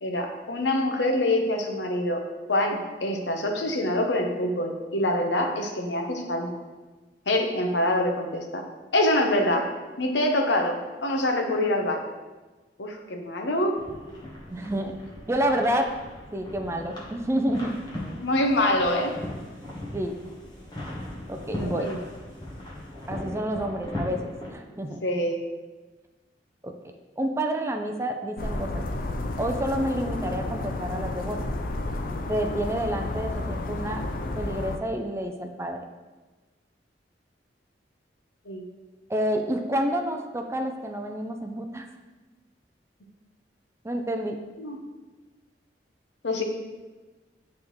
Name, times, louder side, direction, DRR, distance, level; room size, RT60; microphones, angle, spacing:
voice 1, 0.0-2.2 2.5-6.6 7.3-8.6 8.9-9.7 10.0-12.0 12.8-13.7 18.2-19.1 21.5-22.0 24.7-25.4 38.5-38.7 44.6-44.8 46.2-46.4, left 1 dB, 80° left, 3 dB, 0.9 m, -25 dB
sound 1, 13.7-24.5, left 1 dB, 25° left, 1.2 m, -38 dB
voice 2, 14.5-14.9 15.3-16.0 16.3-17.8 19.9-20.1 21.3-21.9 23.1-25.0 26.6-26.7 27.2-28.8 29.4-31.5 32.3-34.0 34.4-35.8 39.1-41.9 43.8-44.4, right 1 dB, 15° right, 4 dB, 0.4 m, -29 dB
sound 2, 28.4-34.8, left 2 dB, 50° left, 0.5 m, -31 dB
10.0 x 3.6 x 3.1 m, 1.2 s
head